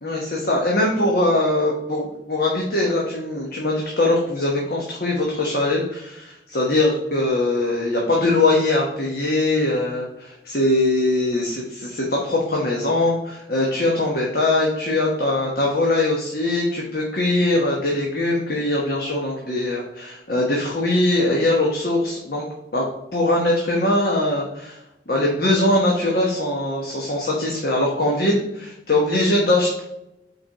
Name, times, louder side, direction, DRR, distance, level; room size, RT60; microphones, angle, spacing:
voice 1, 0.0-22.4 22.7-22.8 23.1-24.8 25.1-29.8, left 2 dB, 55° left, -2 dB, 1.1 m, -21 dB
5.3 x 4.6 x 4.8 m, 0.89 s
head